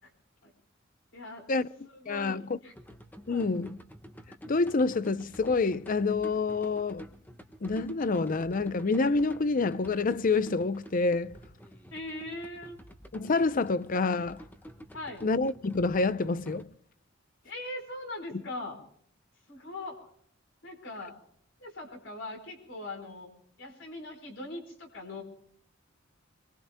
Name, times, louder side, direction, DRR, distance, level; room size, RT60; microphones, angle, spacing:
voice 1, 1.1-1.4 1.9-2.7 3.3-3.5 11.9-12.8 14.9-15.2 17.4-18.8 19.5-20.1 20.6-21.2 21.6-23.3 23.6-25.2, left 2 dB, 70° left, 4.5 m, -41 dB
voice 2, 2.1-2.6 3.3-3.8 4.5-7.1 7.6-11.4 13.1-14.4 15.2-16.7, left 3 dB, 45° left, 0.6 m, -27 dB
sound 1, 2.7-16.6, equal, 10° left, 1.2 m, -49 dB
25.0 x 23.0 x 2.2 m
head